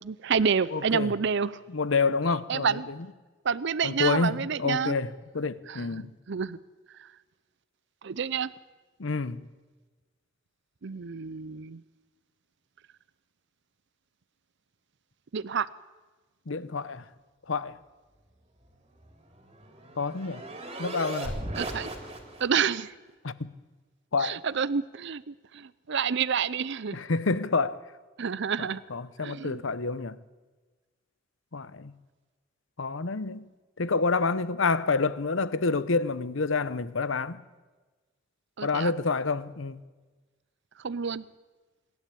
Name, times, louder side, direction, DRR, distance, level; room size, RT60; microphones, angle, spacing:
voice 1, 0.0-1.6 2.5-2.9 3.4-5.0 5.7-6.6 7.0-7.1 8.0-8.5 10.8-11.8 15.3-15.7 21.6-21.9 22.4-22.9 24.2-27.0 28.2-28.8 29.2-29.6 38.6-38.9 40.8-41.2, right 6 dB, 60° right, 0.6 m, -29 dB
voice 2, 0.7-1.1 1.7-2.8 3.8-6.1 9.0-9.4 16.5-17.0 17.5-17.8 20.0-20.4 20.8-21.4 23.2-23.5 24.1-24.4 26.9-27.8 28.6-30.2 31.5-31.9 32.8-33.4 33.8-37.4 38.6-39.8, left 4 dB, 70° left, 0.8 m, -28 dB
sound 1, 19.0-22.6, right 1 dB, 30° right, 3.4 m, -37 dB
26.0 x 12.0 x 8.5 m
head